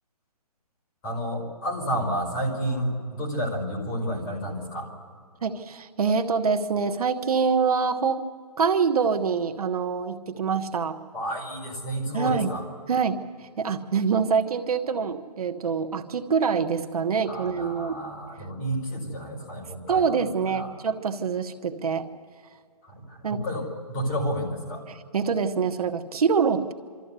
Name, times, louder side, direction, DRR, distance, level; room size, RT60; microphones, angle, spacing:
voice 1, 1.0-4.9 11.1-12.6 17.3-20.7 22.8-24.8, equal, 20° left, -2 dB, 4.9 m, -31 dB
voice 2, 5.4-8.2 8.6-11.0 12.1-12.5 12.9-18.0 19.9-22.1 23.2-23.4 24.9-26.7, right 5 dB, 65° right, 7 dB, 1.3 m, -25 dB
25.0 x 14.0 x 8.2 m, 2.1 s
hypercardioid pair, 165°, 20 cm